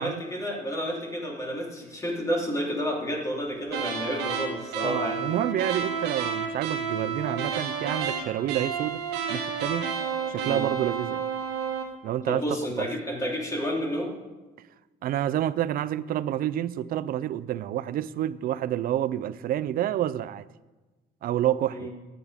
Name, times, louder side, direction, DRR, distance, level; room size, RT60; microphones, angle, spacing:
voice 1, 0.0-5.2 10.4-10.6 12.3-14.1 21.7-21.9, equal, 20° left, 3.6 m, -30 dB
sound 1, 3.7-12.0, right 6 dB, 85° right, 1.5 m, -31 dB
voice 2, 4.8-9.0 9.3-9.9 10.3-11.2 12.0-12.4 12.8-12.9 15.0-20.4 21.2-21.9, right 12 dB, 60° right, 0.5 m, -28 dB
15.0 x 10.5 x 3.6 m
cardioid pair, 110°, 17 cm